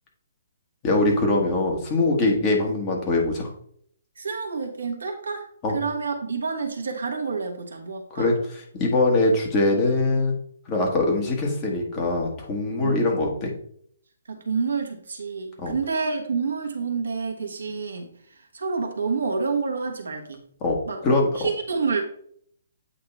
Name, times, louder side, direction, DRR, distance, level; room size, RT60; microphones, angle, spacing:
voice 1, 0.8-3.5 5.6-5.7 8.1-8.3 8.7-10.3 10.7-13.5 15.6-15.7 20.6-20.8 21.0-21.5, left 2 dB, 30° left, 0 dB, 1.6 m, -22 dB
voice 2, 4.2-5.4 5.7-8.3 12.8-13.0 14.3-18.1 18.5-20.4 20.9-21.0 21.4-22.0, right 4 dB, 70° right, 3 dB, 1.2 m, -28 dB
8.2 x 2.9 x 4.5 m, 0.64 s
figure-of-eight pair, 130°, 0 cm